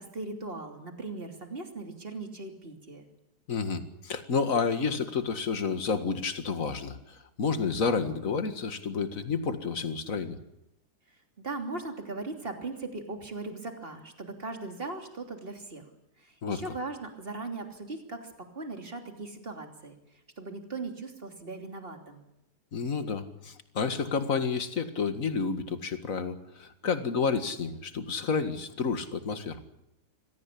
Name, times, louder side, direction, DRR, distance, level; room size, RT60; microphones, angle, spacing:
voice 1, 0.0-3.1 11.4-15.9 16.2-20.0 20.4-22.2, right 3 dB, 35° right, 5 dB, 3.3 m, -39 dB
voice 2, 3.5-10.4 16.4-16.7 22.7-29.6, left 5 dB, 55° left, 9 dB, 2.2 m, -30 dB
25.5 x 17.0 x 8.5 m, 0.85 s
omnidirectional pair, 1.7 m